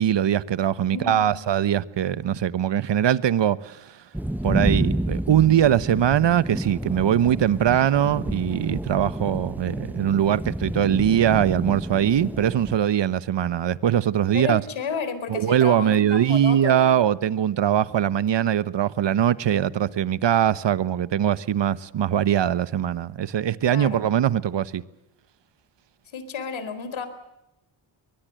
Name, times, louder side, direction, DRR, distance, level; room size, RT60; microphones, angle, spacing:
voice 1, 0.0-3.9 4.4-14.6 15.3-24.8, right 10 dB, 60° right, 1.2 m, -21 dB
voice 2, 0.9-1.4 14.3-17.0 23.7-24.1 26.1-27.1, left 5 dB, 70° left, 4.2 m, -32 dB
sound 1, 4.1-12.8, right 1 dB, 5° right, 1.1 m, -30 dB
23.5 x 21.0 x 7.8 m
cardioid pair, 65°, 49 cm